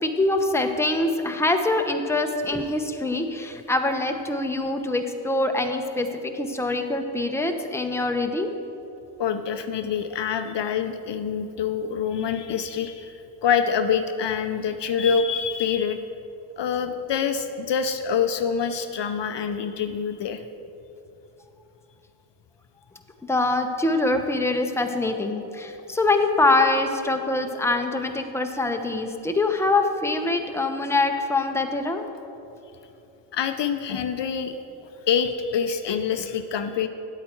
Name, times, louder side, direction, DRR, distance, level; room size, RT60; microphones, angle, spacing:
voice 1, 0.0-8.5 23.3-32.1, left 2 dB, 5° left, 5 dB, 0.8 m, -24 dB
voice 2, 9.2-13.1 13.4-16.0 16.6-20.4 33.3-34.6 35.1-36.9, left 7 dB, 60° left, 8 dB, 0.6 m, -26 dB
9.0 x 8.4 x 4.5 m, 2.8 s
supercardioid pair, 45°, 49 cm